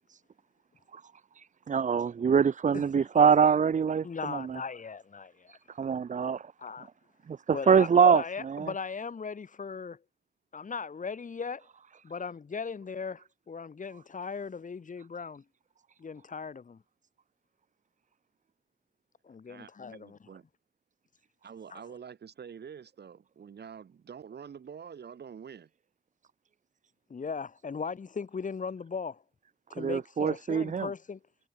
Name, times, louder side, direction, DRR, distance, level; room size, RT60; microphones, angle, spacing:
voice 1, 1.3-4.6 5.5-6.5 7.3-8.2 8.5-8.7 29.8-30.9, right 6 dB, 45° right, 0.7 m, -24 dB
voice 2, 2.7-3.1 4.0-5.6 6.6-6.9 7.5-10.0 10.5-11.7 12.0-15.4 16.0-16.8 19.2-20.2 21.7-21.8 27.1-29.2 29.7-31.2, left 5 dB, 50° left, 3.7 m, -38 dB
voice 3, 19.5-20.4 21.4-25.7, right 7 dB, 75° right, 7.9 m, -46 dB
wide cardioid pair, 120°, 17 cm